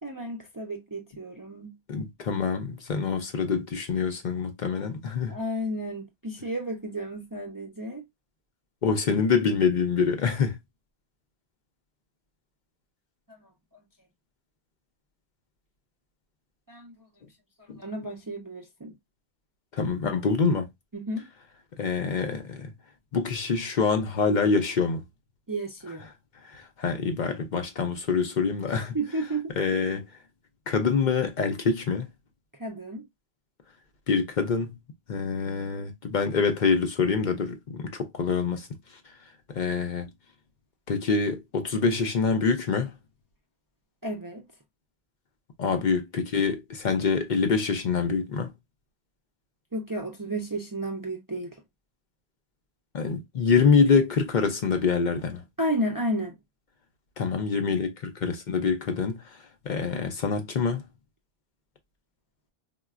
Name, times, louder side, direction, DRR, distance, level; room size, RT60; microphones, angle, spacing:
voice 1, 0.0-1.8 5.3-8.0 13.4-13.5 16.7-16.9 17.8-18.9 20.9-21.3 25.5-26.1 28.7-29.5 32.6-33.0 35.3-35.7 44.0-44.4 49.7-51.6 55.6-56.4, right 1 dB, 30° right, 0.4 m, -32 dB
voice 2, 1.9-5.3 8.8-10.6 17.7-17.8 19.7-20.7 21.8-22.7 23.1-25.0 26.5-29.0 29.6-30.0 30.7-32.1 34.1-34.7 35.1-38.7 39.5-40.1 40.9-42.9 45.6-48.5 52.9-55.4 57.2-59.2 59.7-60.8, left 5 dB, 55° left, 0.6 m, -25 dB
3.9 x 2.2 x 2.3 m
omnidirectional pair, 1.0 m